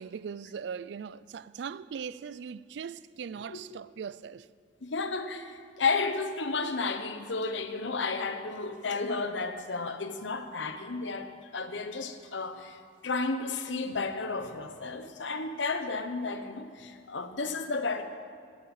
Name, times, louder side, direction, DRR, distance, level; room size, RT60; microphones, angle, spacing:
voice 1, 0.0-4.5, right 6 dB, 70° right, 0.3 m, -40 dB
voice 2, 4.8-18.0, left 4 dB, 80° left, 0.9 m, -32 dB
10.0 x 9.3 x 8.1 m
head